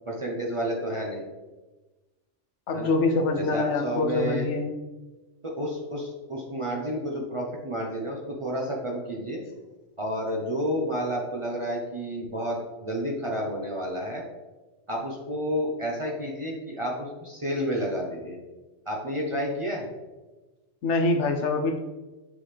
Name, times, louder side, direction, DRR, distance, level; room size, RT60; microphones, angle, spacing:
voice 1, 0.1-1.3 2.7-2.9 3.4-4.5 5.4-9.4 10.0-14.2 14.9-18.4 18.9-19.9, equal, 30° right, -1 dB, 0.7 m, -30 dB
voice 2, 2.7-4.7 20.8-21.8, left 3 dB, 75° left, 4 dB, 1.0 m, -25 dB
7.9 x 3.8 x 3.3 m, 1.2 s
omnidirectional pair, 1.2 m